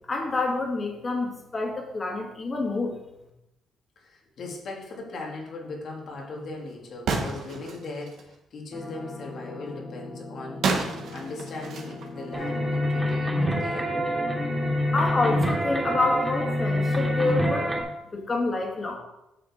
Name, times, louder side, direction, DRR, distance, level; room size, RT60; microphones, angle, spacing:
voice 1, 0.1-2.9 14.9-17.7 18.1-19.0, left 2 dB, 35° left, 0 dB, 2.5 m, -27 dB
voice 2, 4.0-10.7 11.1-13.9, left 3 dB, 60° left, 0 dB, 2.4 m, -38 dB
sound 1, 7.1-8.4 10.6-12.7, right 4 dB, 75° right, 1.6 m, -31 dB
sound 2, 8.7-14.9, left 2 dB, ahead, 2.0 m, -40 dB
sound 3, 12.3-17.8, left 1 dB, 20° right, 2.5 m, -26 dB
9.1 x 6.6 x 4.4 m, 0.90 s
cardioid pair, 90°, 0 cm